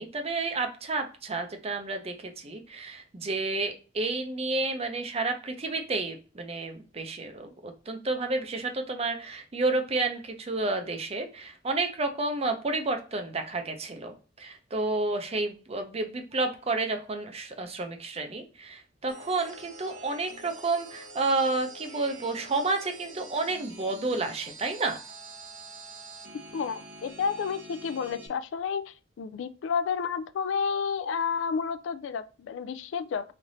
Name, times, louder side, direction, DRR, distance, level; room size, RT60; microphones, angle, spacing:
voice 1, 0.0-25.0, right 3 dB, 35° right, 0.6 m, -30 dB
sound 1, 19.1-28.3, right 2 dB, 85° right, 1.0 m, -46 dB
voice 2, 26.5-33.3, left 6 dB, 70° left, 0.3 m, -31 dB
3.2 x 2.6 x 3.9 m
head